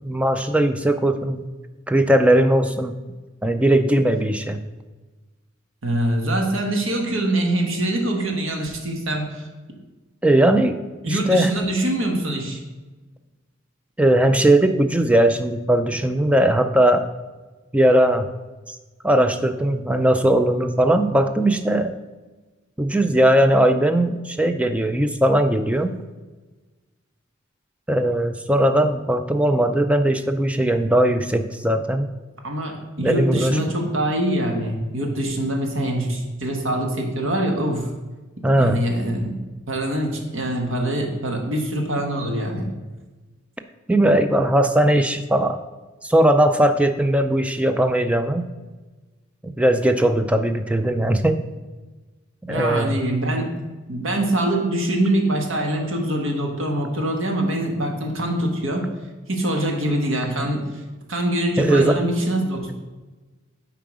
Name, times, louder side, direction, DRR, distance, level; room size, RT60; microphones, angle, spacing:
voice 1, 0.0-1.4 1.9-2.9 3.4-4.6 10.2-10.7 11.1-11.5 14.0-17.1 17.7-18.3 19.0-21.9 22.8-26.0 27.9-32.1 33.0-33.8 38.4-38.8 43.9-45.6 46.0-48.4 49.4-51.4 52.5-53.0 61.6-61.9, right 1 dB, 5° right, 8 dB, 0.4 m, -19 dB
voice 2, 5.8-9.5 11.0-12.6 32.4-37.9 38.6-39.3 39.7-42.7 52.5-53.5 53.9-58.8 59.3-60.8 61.1-62.7, right 1 dB, 85° right, 2 dB, 1.4 m, -24 dB
7.4 x 4.7 x 4.9 m, 1.2 s
head